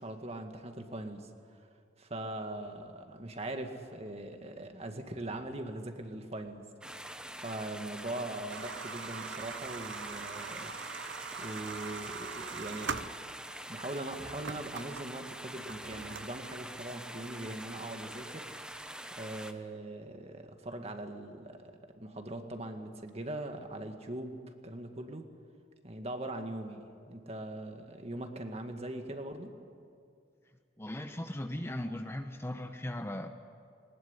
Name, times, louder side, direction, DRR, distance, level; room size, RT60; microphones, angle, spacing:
voice 1, 0.0-1.7 2.0-7.1 7.4-10.7 11.4-13.1 13.7-18.5 19.1-25.3 25.8-29.5, right 1 dB, 35° right, 5 dB, 1.9 m, -41 dB
sound 1, 6.8-19.5, right 1 dB, 5° right, 1.0 m, -45 dB
sound 2, 8.5-13.6 14.0-16.6, right 6 dB, 85° right, 0.8 m, -42 dB
voice 2, 30.8-33.3, left 1 dB, 15° left, 7 dB, 0.9 m, -38 dB
20.0 x 19.5 x 9.9 m, 2.3 s
head